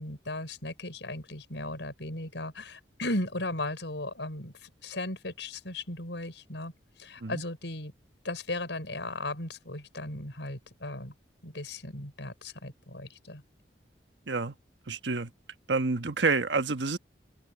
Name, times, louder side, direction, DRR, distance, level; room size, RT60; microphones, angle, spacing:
voice 1, 0.0-6.7 7.0-7.9 8.2-11.1 11.4-13.4, left 2 dB, 90° left, 5.8 m, -36 dB
voice 2, 14.9-15.3 15.7-17.0, right 4 dB, 80° right, 1.2 m, -28 dB
open air
head